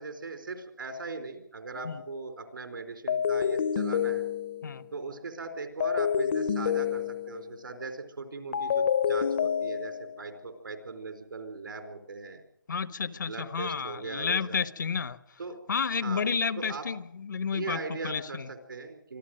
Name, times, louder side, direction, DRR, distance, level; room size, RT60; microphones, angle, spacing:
voice 1, 0.0-4.2 4.9-12.4 13.1-14.6 15.4-15.6 16.0-16.2 16.6-16.9 17.5-19.2, right 3 dB, 80° right, 4.3 m, -39 dB
sound 1, 1.7-2.0 3.1-4.8 5.8-7.5 8.5-10.2, left 7 dB, 35° left, 0.7 m, -28 dB
voice 2, 12.7-15.4 15.7-18.5, left 6 dB, 65° left, 1.2 m, -31 dB
25.5 x 14.0 x 7.8 m
hypercardioid pair, 170°, 11 cm